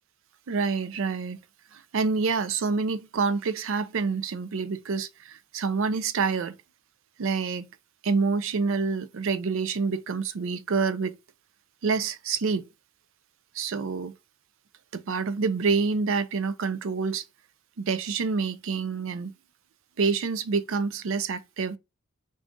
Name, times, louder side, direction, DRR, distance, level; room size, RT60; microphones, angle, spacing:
voice 1, 0.5-1.4 1.7-6.6 7.2-7.7 8.0-11.2 11.8-12.6 13.5-14.1 14.9-17.2 17.8-19.3 20.0-21.8, right 4 dB, 65° right, 0.4 m, -27 dB
3.8 x 2.4 x 3.5 m
head